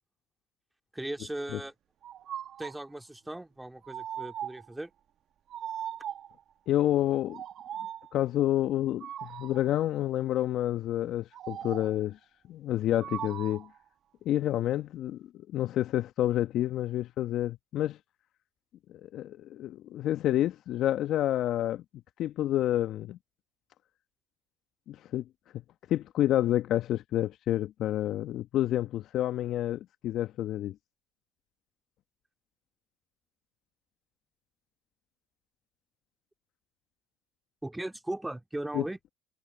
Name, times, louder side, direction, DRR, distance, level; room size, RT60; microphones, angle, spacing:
voice 1, 0.9-1.7 2.6-4.9 37.6-39.0, right 1 dB, 10° right, 2.4 m, -37 dB
sound 1, 2.0-2.9 3.8-4.7 5.5-6.4 7.3-8.1 9.0-9.7 11.3-12.1 13.0-13.8, right 10 dB, 55° right, 1.6 m, -39 dB
voice 2, 6.7-7.4 8.1-12.2 12.5-13.7 14.2-18.0 18.9-21.8 22.2-23.2 24.9-25.2 25.9-30.7 38.7-38.8, left 13 dB, 60° left, 1.3 m, -29 dB
hypercardioid pair, 65°, 0 cm